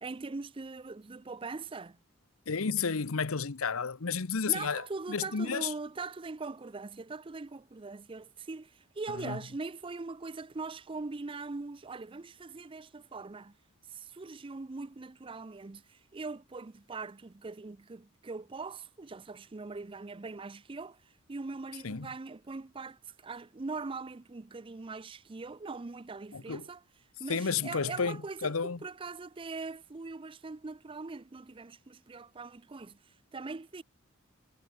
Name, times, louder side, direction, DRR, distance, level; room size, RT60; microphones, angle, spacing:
voice 1, 0.0-2.0 4.5-13.5 13.9-26.8 27.2-33.8, right 3 dB, 25° right, 0.5 m, -41 dB
voice 2, 2.5-5.7 9.2-9.4 21.8-22.1 26.3-26.6 27.3-28.8, left 5 dB, 80° left, 0.9 m, -32 dB
head